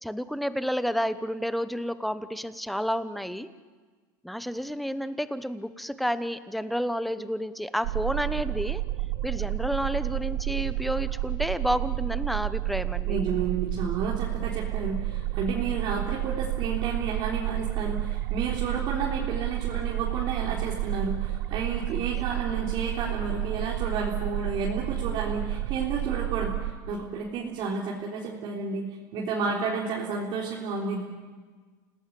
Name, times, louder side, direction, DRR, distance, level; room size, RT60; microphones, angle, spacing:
voice 1, 0.0-3.5 4.2-8.8 9.2-13.2 15.6-15.8 21.9-22.1, equal, ahead, 13 dB, 1.1 m, -30 dB
sound 1, 7.8-26.7, right 15 dB, 75° right, 1.6 m, -30 dB
voice 2, 13.1-31.0, right 5 dB, 50° right, -3 dB, 3.8 m, -31 dB
28.5 x 18.0 x 8.5 m, 1.4 s
supercardioid pair, 120°, 10 cm